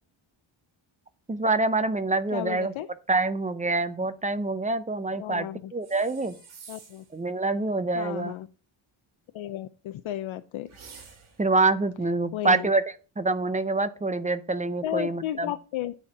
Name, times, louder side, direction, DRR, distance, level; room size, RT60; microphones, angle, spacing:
voice 1, 1.3-2.7 3.1-6.3 7.1-8.3 11.4-12.8 13.2-15.5, right 3 dB, 15° right, 13 dB, 0.5 m, -26 dB
voice 2, 2.3-2.9 5.2-5.7 6.7-7.0 7.9-8.5 9.3-10.7 12.3-12.7 14.8-15.9, left 12 dB, 70° left, 11 dB, 0.6 m, -33 dB
sound 1, 5.8-7.2 10.7-11.5, right 5 dB, 70° right, 2.6 m, -49 dB
9.0 x 4.4 x 7.1 m, 0.37 s
wide cardioid pair, 160°, 49 cm